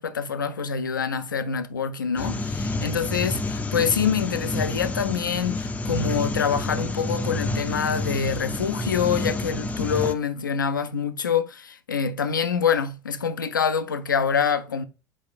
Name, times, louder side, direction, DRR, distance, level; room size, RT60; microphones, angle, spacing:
voice 1, 0.0-14.8, left 6 dB, 85° left, 0.4 m, -26 dB
sound 1, 2.2-10.1, left 2 dB, 15° left, 0.4 m, -29 dB
4.2 x 4.2 x 2.4 m
figure-of-eight pair, 75°, 10 cm